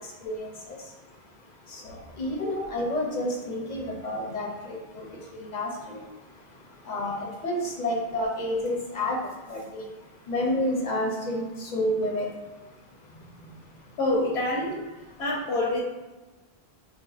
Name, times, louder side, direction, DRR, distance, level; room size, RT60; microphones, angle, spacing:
voice 1, 0.4-0.8 1.7-4.8 5.5-6.0 6.9-9.2 9.5-9.8 10.3-12.3, left 1 dB, 55° left, -1 dB, 0.5 m, -29 dB
voice 2, 13.1-13.6 14.0-14.7 15.2-15.8, left 1 dB, 80° left, -4 dB, 0.8 m, -27 dB
3.4 x 2.6 x 2.3 m, 1.2 s
omnidirectional pair, 1.1 m